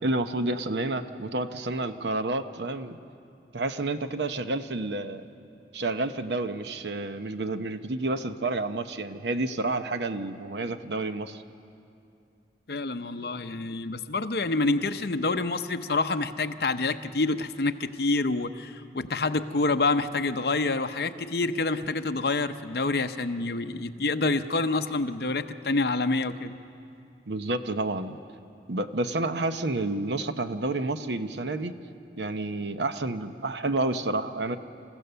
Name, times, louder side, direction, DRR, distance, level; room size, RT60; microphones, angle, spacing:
voice 1, 0.0-3.0 3.5-5.2 5.7-11.4 27.3-28.2 28.7-31.8 32.2-34.6, right 2 dB, 80° right, 9 dB, 0.8 m, -30 dB
voice 2, 12.7-26.6, left 3 dB, 60° left, 9 dB, 0.7 m, -27 dB
28.0 x 15.5 x 6.8 m, 2.6 s
head